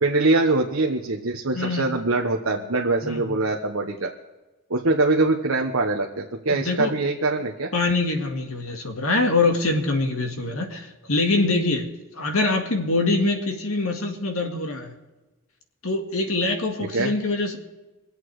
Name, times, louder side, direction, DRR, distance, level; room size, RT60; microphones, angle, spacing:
voice 1, 0.0-4.1 4.7-7.7 16.8-17.1, right 2 dB, 70° right, 1 dB, 1.1 m, -23 dB
voice 2, 1.5-1.9 3.0-3.4 6.5-6.9 7.7-14.9 15.8-17.6, left 2 dB, 75° left, 5 dB, 2.1 m, -24 dB
24.0 x 8.3 x 4.8 m, 1.1 s
head